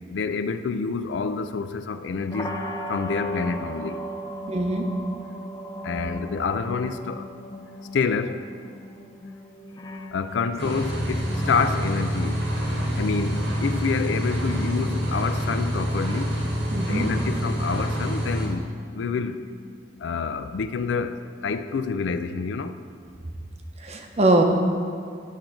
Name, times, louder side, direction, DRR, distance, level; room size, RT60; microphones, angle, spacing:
voice 1, 0.1-2.6 2.9-4.0 5.8-7.3 7.9-8.4 10.1-12.4 13.0-16.3 16.9-19.4 20.0-21.1 21.4-22.7, left 5 dB, 90° left, 0.4 m, -27 dB
sound 1, 2.3-22.1, equal, 20° left, 0.5 m, -39 dB
voice 2, 4.5-4.9 16.7-17.1 23.8-24.4, right 2 dB, 35° right, 0.8 m, -22 dB
sound 2, 10.6-18.5, equal, 85° right, 2.1 m, -26 dB
11.0 x 3.8 x 5.8 m
head